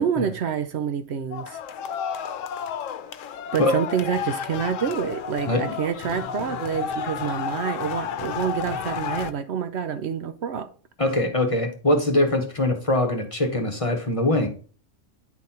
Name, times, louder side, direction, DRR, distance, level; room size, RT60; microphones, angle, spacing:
voice 1, 0.0-1.6 3.5-10.7, right 8 dB, 65° right, 0.8 m, -27 dB
sound 1, 1.3-9.3, left 7 dB, 90° left, 1.0 m, -31 dB
voice 2, 11.0-14.5, left 1 dB, 30° left, 1.0 m, -22 dB
9.5 x 4.0 x 4.2 m
omnidirectional pair, 1.3 m